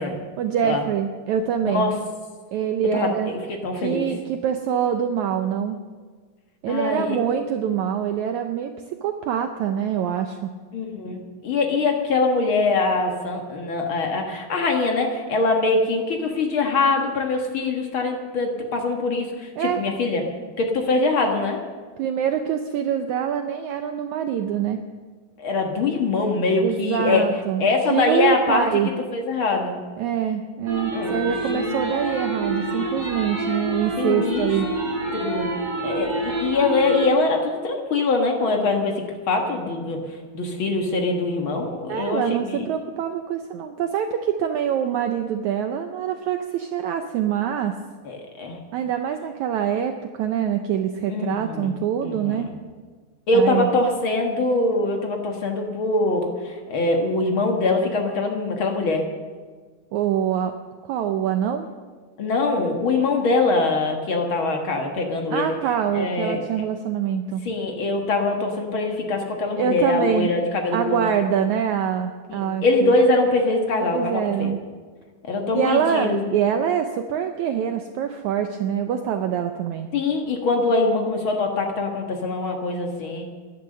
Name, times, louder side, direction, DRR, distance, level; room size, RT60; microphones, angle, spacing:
voice 1, 0.4-1.9 2.5-3.3 3.8-5.8 6.6-10.5 19.6-19.8 22.0-24.8 26.6-28.9 30.0-34.7 41.9-47.8 48.7-52.5 53.3-53.7 59.9-60.5 60.8-61.7 65.3-67.4 69.6-70.3 70.7-72.9 73.8-74.6 75.5-79.9, right 8 dB, 90° right, 6 dB, 1.6 m, -25 dB
voice 2, 1.6-1.9 2.9-4.1 6.7-7.2 10.7-20.2 20.6-21.6 25.4-27.3 27.6-28.7 29.1-29.8 30.9-32.0 32.6-32.8 34.0-34.5 35.1-35.5 35.8-42.6 48.0-48.6 51.1-51.7 52.0-52.5 53.3-59.1 62.2-65.6 65.9-66.6 67.4-71.0 72.3-74.5 75.2-76.4 79.9-83.2, left 3 dB, 50° left, 2 dB, 1.7 m, -23 dB
sound 1, 30.7-37.1, right 2 dB, 45° right, 6.0 m, -27 dB
15.0 x 11.5 x 6.7 m, 1.5 s
omnidirectional pair, 4.3 m